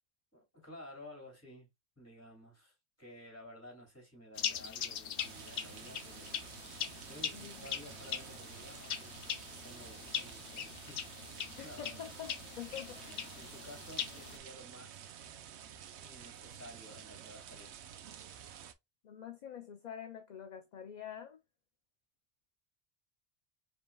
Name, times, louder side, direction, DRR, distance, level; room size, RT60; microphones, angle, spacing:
voice 1, 0.3-1.7 2.0-6.5 7.1-9.2 9.6-11.1 11.6-12.0 12.9-15.2 16.0-17.9, left 1 dB, 15° left, 2.6 m, -53 dB
sound 1, 4.4-14.4, left 8 dB, 90° left, 0.9 m, -41 dB
sound 2, 5.2-18.7, right 9 dB, 90° right, 0.9 m, -50 dB
voice 2, 7.3-7.6 11.6-13.1 19.0-21.4, left 9 dB, 50° left, 0.6 m, -46 dB
5.4 x 3.5 x 2.2 m
omnidirectional pair, 1.1 m